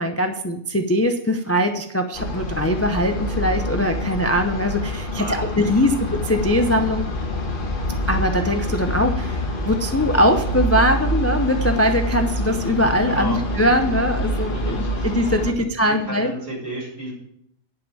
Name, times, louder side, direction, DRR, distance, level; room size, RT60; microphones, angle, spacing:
voice 1, 0.0-7.1 8.1-16.3, equal, 15° left, 5 dB, 0.6 m, -21 dB
sound 1, 2.1-15.5, equal, 45° left, 1.5 m, -26 dB
voice 2, 5.1-6.0 13.1-13.4 14.5-15.1 15.5-17.1, equal, 55° right, -5 dB, 6.1 m, -33 dB
10.5 x 5.7 x 8.6 m, 0.74 s
omnidirectional pair, 1.2 m